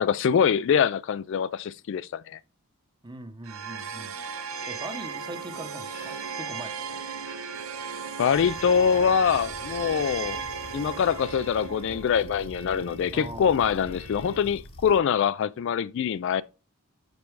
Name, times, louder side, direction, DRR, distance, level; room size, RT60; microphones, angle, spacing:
voice 1, 0.0-2.4 8.2-10.4 10.7-16.4, left 7 dB, 55° left, 0.3 m, -24 dB
voice 2, 3.0-4.1 4.7-7.0 13.1-13.6, right 2 dB, 20° right, 0.8 m, -41 dB
sound 1, 3.4-14.5, right 6 dB, 70° right, 0.7 m, -37 dB
sound 2, 4.0-14.5, left 2 dB, 80° left, 1.2 m, -51 dB
sound 3, 8.3-15.0, left 1 dB, 25° left, 0.8 m, -45 dB
5.8 x 5.3 x 4.6 m
head